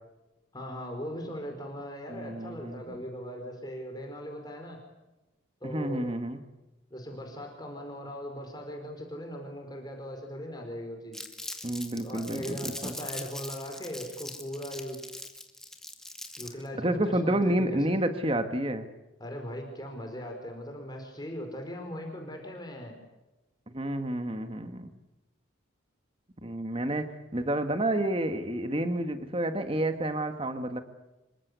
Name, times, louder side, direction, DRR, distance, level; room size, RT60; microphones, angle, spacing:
voice 1, 0.5-4.8 5.6-6.1 6.9-11.2 12.0-15.0 16.4-17.8 19.2-23.0, equal, 20° left, 3 dB, 4.8 m, -39 dB
voice 2, 2.1-3.0 5.6-6.4 11.6-12.9 16.8-18.9 23.7-24.9 26.4-30.8, right 1 dB, 30° right, 8 dB, 1.6 m, -30 dB
Crumpling crinkling, 11.1-16.7, left 1 dB, 5° left, 2.2 m, -41 dB
26.5 x 24.0 x 8.2 m, 1.0 s
head